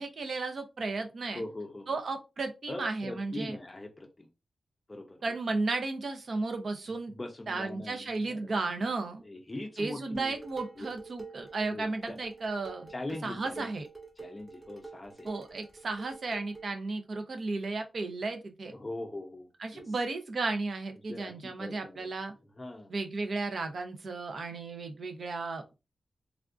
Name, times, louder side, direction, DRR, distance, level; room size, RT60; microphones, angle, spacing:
voice 1, 0.0-1.4 1.9-3.6 5.2-7.1 7.5-9.2 9.8-12.9 13.2-13.9 15.2-18.7 19.6-22.3 22.9-25.7, right 3 dB, 65° right, 6 dB, 0.6 m, -34 dB
voice 2, 1.3-2.0 2.7-4.3 4.9-5.2 6.9-8.5 9.2-10.4 10.8-10.9 11.7-12.2 12.9-13.7 14.2-15.3 18.7-19.9 21.1-22.1 22.6-22.9, left 2 dB, 25° left, 3 dB, 0.5 m, -41 dB
Dishes pots and pans, 10.1-16.8, right 4 dB, 20° right, 0.9 m, -47 dB
3.5 x 2.4 x 2.4 m, 0.26 s
wide cardioid pair, 110°, 0 cm